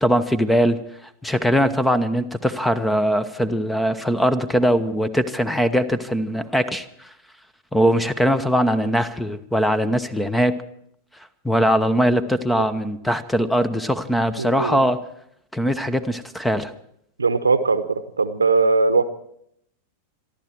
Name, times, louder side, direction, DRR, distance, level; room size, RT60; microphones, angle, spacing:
voice 1, 0.0-7.1 7.7-10.5 11.4-15.0 15.5-16.7, equal, 5° left, 15 dB, 1.0 m, -21 dB
voice 2, 14.4-14.8 17.2-19.0, right 4 dB, 75° right, 11 dB, 1.0 m, -20 dB
26.5 x 11.5 x 4.6 m, 0.71 s
figure-of-eight pair, 90°, 0 cm